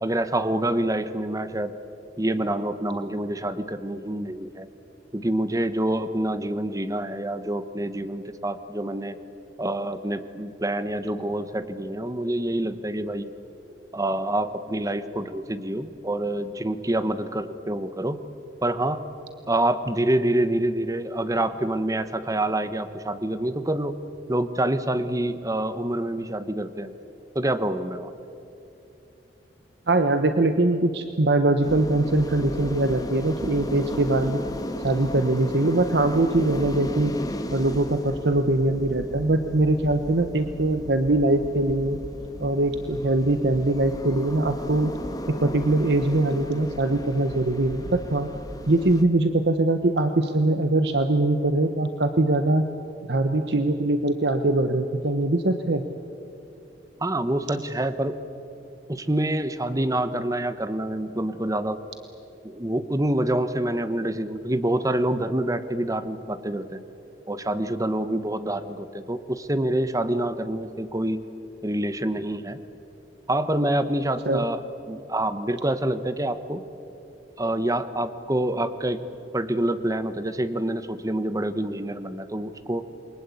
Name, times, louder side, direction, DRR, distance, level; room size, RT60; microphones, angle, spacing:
voice 1, 0.0-1.7 2.2-4.7 5.1-9.1 9.6-13.3 13.9-18.2 18.6-19.0 19.5-24.0 24.3-26.9 27.3-28.1 57.0-58.2 58.9-61.8 62.4-66.8 67.3-71.2 71.6-72.6 73.3-74.6 74.9-76.6 77.4-79.0 79.3-82.8, right 1 dB, 20° right, 12 dB, 1.1 m, -26 dB
voice 2, 29.9-34.4 34.8-37.1 37.5-42.0 42.4-44.9 45.4-48.3 48.7-52.7 53.1-55.8 74.2-74.4, right 2 dB, 65° right, 8 dB, 1.1 m, -22 dB
sound 1, 31.6-49.0, left 1 dB, 20° left, 1.8 m, -35 dB
28.5 x 23.0 x 8.5 m, 2.8 s
head